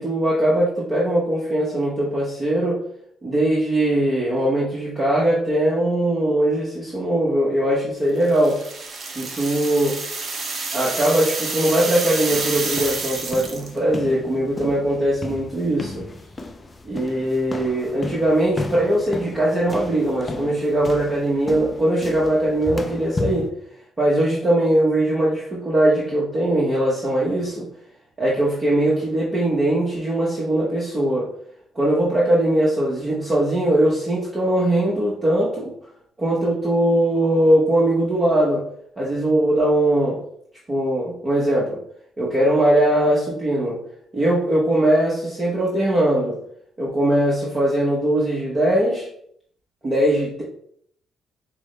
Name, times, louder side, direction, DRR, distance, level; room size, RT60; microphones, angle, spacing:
voice 1, 0.0-2.8 3.2-8.6 9.1-10.0 10.7-16.0 16.8-23.5 24.0-27.7 28.2-31.3 31.7-35.7 36.2-38.6 39.0-40.2 40.7-41.8 42.2-43.8 44.1-46.4 46.8-49.1 49.8-50.4, right 1 dB, 30° right, -6 dB, 1.1 m, -20 dB
sound 1, 8.2-13.8, right 3 dB, 50° right, 0.8 m, -29 dB
sound 2, 12.3-23.5, left 2 dB, 25° left, 0.4 m, -34 dB
6.0 x 2.1 x 3.2 m, 0.66 s
cardioid pair, 90°, 0 cm